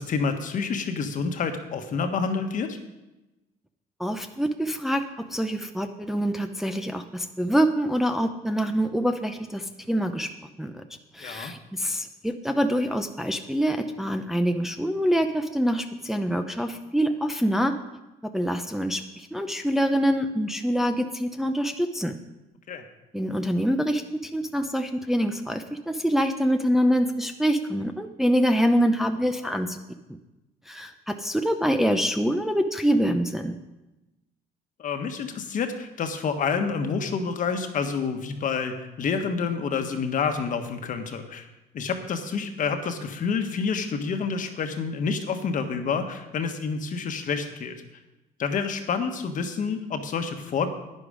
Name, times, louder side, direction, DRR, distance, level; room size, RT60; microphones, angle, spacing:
voice 1, 0.0-2.8 11.2-11.5 22.7-22.8 34.8-41.5 41.7-47.8 48.4-50.7, left 5 dB, 50° left, 6 dB, 1.3 m, -28 dB
voice 2, 4.0-10.3 10.6-10.8 11.1-17.7 18.3-22.2 23.1-29.8 30.7-33.6, equal, ahead, 5 dB, 0.6 m, -25 dB
11.0 x 9.9 x 5.0 m, 1.0 s
cardioid pair, 110°, 17 cm